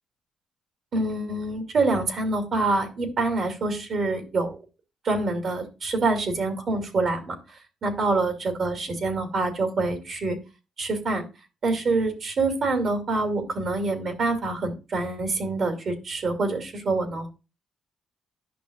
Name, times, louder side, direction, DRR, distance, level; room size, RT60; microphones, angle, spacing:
voice 1, 0.9-4.6 5.0-10.4 10.8-11.2 11.6-17.3, right 3 dB, 55° right, 3 dB, 2.4 m, -26 dB
11.0 x 5.8 x 2.4 m, 0.30 s
cardioid pair, 90°, 0 cm